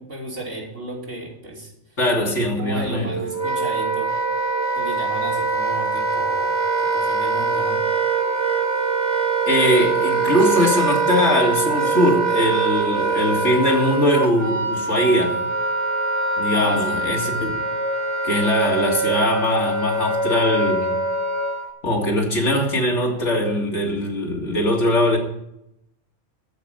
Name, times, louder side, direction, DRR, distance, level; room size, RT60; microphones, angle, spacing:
voice 1, 0.0-1.7 2.6-4.1 4.7-7.8 16.5-17.0, right 2 dB, 80° right, 3.4 m, -33 dB
voice 2, 2.0-3.1 9.5-15.4 16.4-17.5 18.2-20.9 21.8-25.2, left 1 dB, 70° left, 2.6 m, -21 dB
Wind instrument woodwind instrument, 2.9-21.7, right 3 dB, 55° right, 2.3 m, -23 dB
13.0 x 5.1 x 9.1 m
omnidirectional pair, 1.2 m